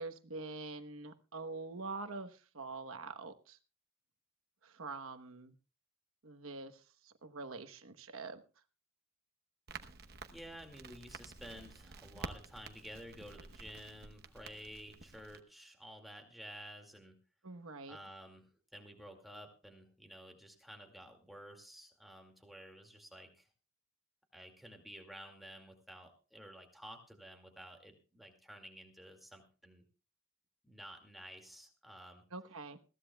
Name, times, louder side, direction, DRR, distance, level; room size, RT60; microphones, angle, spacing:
voice 1, 0.0-3.6 4.6-5.5 6.2-8.4 17.4-18.0 32.3-32.8, right 3 dB, 85° right, 7 dB, 1.1 m, -45 dB
Crackle, 9.7-15.4, right 4 dB, 50° right, 1.0 m, -50 dB
voice 2, 10.3-17.2 17.9-23.5 24.3-29.8 30.6-32.2, equal, ahead, 2 dB, 2.2 m, -52 dB
21.0 x 15.5 x 2.3 m, 0.35 s
head